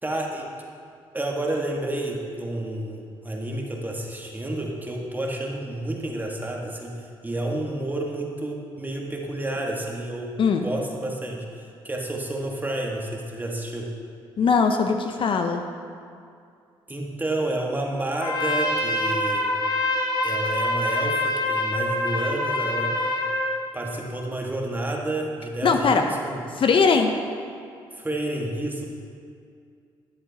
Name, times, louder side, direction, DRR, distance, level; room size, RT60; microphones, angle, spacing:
voice 1, 0.0-0.5 1.1-13.9 16.9-19.4 20.2-22.9 23.7-26.4 27.9-28.9, right 1 dB, 15° right, 0 dB, 1.5 m, -30 dB
voice 2, 14.4-15.6 25.6-26.0 26.6-27.1, left 5 dB, 50° left, 5 dB, 0.6 m, -20 dB
Trumpet, 18.2-23.6, left 1 dB, 35° left, 1.2 m, -25 dB
11.5 x 7.8 x 2.8 m, 2.3 s
supercardioid pair, 60°, 11 cm